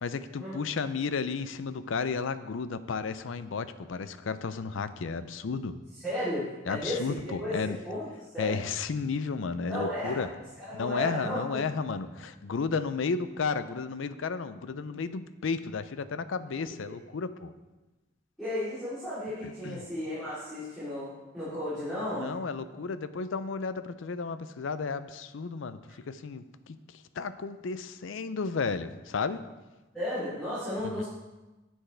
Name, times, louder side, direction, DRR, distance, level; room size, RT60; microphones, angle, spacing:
voice 1, 0.0-5.8 6.7-7.8 8.4-10.3 10.7-17.5 19.4-19.8 22.1-25.8 26.1-26.8 27.2-29.4 31.0-31.1, left 5 dB, 70° left, 13 dB, 0.5 m, -33 dB
voice 2, 6.0-8.1 8.3-8.6 9.7-10.2 10.6-11.4 18.4-22.4 29.9-31.0, equal, 5° left, -14 dB, 3.3 m, -34 dB
9.7 x 7.9 x 3.4 m, 1.1 s
head